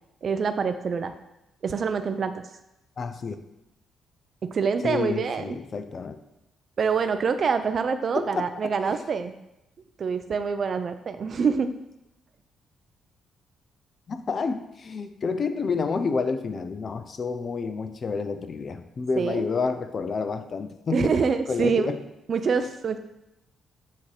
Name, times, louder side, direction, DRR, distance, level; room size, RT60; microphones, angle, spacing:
voice 1, 0.2-1.1 1.6-2.4 4.4-5.6 6.8-9.4 10.0-11.7 19.2-19.5 20.9-21.9 22.3-23.0, right 5 dB, 55° right, 9 dB, 0.5 m, -25 dB
voice 2, 3.0-3.4 4.8-6.2 8.1-8.7 14.1-21.1 21.5-22.0, left 4 dB, 50° left, 10 dB, 0.5 m, -29 dB
8.5 x 2.9 x 4.9 m, 0.89 s
cardioid pair, 70°, 0 cm